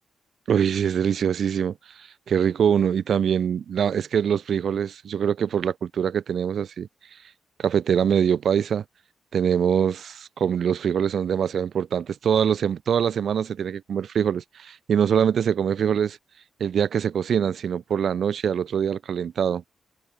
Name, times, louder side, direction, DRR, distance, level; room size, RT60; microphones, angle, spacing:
voice 1, 0.5-6.9 7.6-8.8 9.3-16.2 16.6-19.6, right 8 dB, 60° right, 2.4 m, -23 dB
wide cardioid pair, 145°, 0 cm